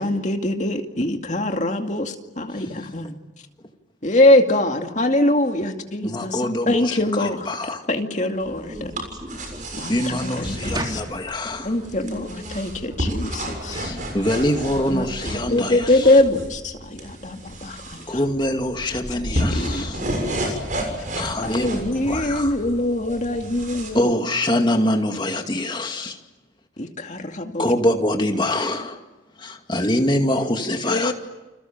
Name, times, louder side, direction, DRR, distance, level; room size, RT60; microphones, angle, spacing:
voice 1, 0.0-3.2 4.0-7.5 7.9-8.9 9.7-10.8 11.6-14.0 14.9-15.1 15.5-18.2 19.3-19.8 21.4-24.2 26.8-27.7 30.8-31.1, left 1 dB, 40° left, 4 dB, 2.4 m, -23 dB
voice 2, 6.0-7.8 9.9-10.8 11.3-11.7 13.8-15.9 18.1-19.9 21.1-22.5 23.9-26.1 27.6-29.0 29.4-31.1, left 1 dB, 25° left, 4 dB, 2.3 m, -24 dB
sound 1, 8.4-23.9, right 1 dB, 45° right, 6.8 m, -31 dB
voice 3, 8.7-10.0 10.7-11.5 11.8-14.3, right 1 dB, 20° right, 1 dB, 3.5 m, -37 dB
29.5 x 27.0 x 7.4 m, 1.1 s
head